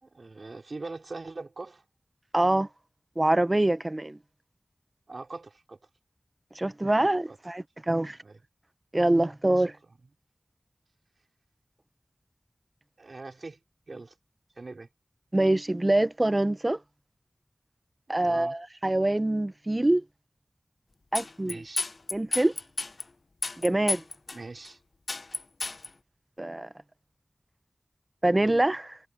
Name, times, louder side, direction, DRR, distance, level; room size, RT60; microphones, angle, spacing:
voice 1, 0.0-1.8 5.1-5.8 7.3-7.4 8.2-8.4 13.0-13.6 13.9-14.1 14.6-14.9 18.1-18.5 21.4-21.9 24.3-24.8, right 3 dB, 70° right, 4.7 m, -42 dB
voice 2, 2.3-2.7 3.2-4.2 6.5-8.2 8.9-9.7 15.3-16.8 18.1-20.0 21.1-21.6 22.1-22.5 23.6-24.0 26.4-26.7 28.2-29.0, right 1 dB, 30° right, 0.7 m, -25 dB
sound 1, 21.1-23.0 23.4-24.4 24.7-24.8 25.1-25.9, left 3 dB, 65° left, 0.5 m, -31 dB
wide cardioid pair, 70°, 0 cm